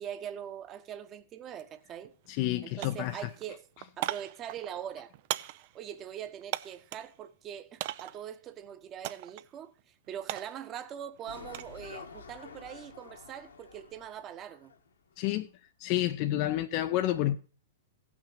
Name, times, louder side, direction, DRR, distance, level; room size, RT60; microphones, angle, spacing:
voice 1, 0.0-2.1 2.6-3.7 4.0-5.1 5.6-9.7 10.1-14.7, right 9 dB, 30° right, 1.2 m, -42 dB
sound 1, 1.6-1.7 2.0-2.5 2.8-7.1 7.8-8.3 9.0-9.5 9.8-11.8 12.1-12.6, right 16 dB, 50° right, 0.6 m, -39 dB
voice 2, 2.3-3.2 15.2-15.5 15.8-17.4, left 14 dB, 45° left, 0.6 m, -29 dB
sound 2, 11.3-15.1 15.4-15.5, left 5 dB, 85° left, 2.0 m, -49 dB
16.0 x 6.1 x 5.7 m
hypercardioid pair, 120°, 0 cm